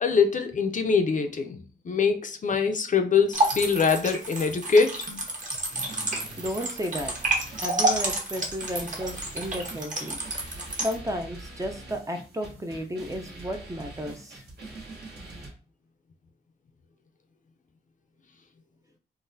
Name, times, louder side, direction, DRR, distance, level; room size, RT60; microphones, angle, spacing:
voice 1, 0.0-5.1, left 5 dB, 45° left, 6 dB, 0.5 m, -23 dB
sound 1, 3.3-11.0, right 2 dB, 45° right, 1.1 m, -29 dB
sound 2, 5.7-15.5, right 2 dB, 70° right, 1.2 m, -44 dB
voice 2, 6.4-7.2 7.6-10.2 10.8-14.4, equal, 20° right, 5 dB, 0.5 m, -33 dB
3.8 x 2.1 x 2.6 m, 0.38 s
cardioid pair, 70°, 18 cm